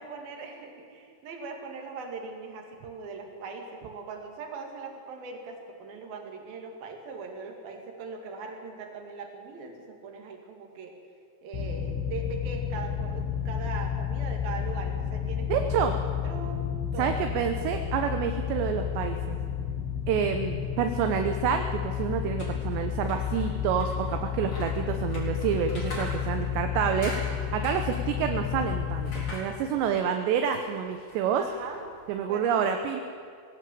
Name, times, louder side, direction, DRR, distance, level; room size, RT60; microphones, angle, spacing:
voice 1, 0.0-11.0 11.4-16.0 16.2-16.6 16.9-17.3 31.4-31.9 32.3-33.0, right 4 dB, 55° right, 3 dB, 3.7 m, -40 dB
sound 1, 11.5-29.3, left 8 dB, 80° left, 4.2 m, -31 dB
voice 2, 15.5-15.9 17.0-19.4 20.1-31.4 32.1-33.0, right 7 dB, 75° right, 6 dB, 2.8 m, -28 dB
sound 2, 22.2-32.3, left 1 dB, 35° left, 4.6 m, -45 dB
20.0 x 16.5 x 8.6 m, 2.2 s
omnidirectional pair, 5.7 m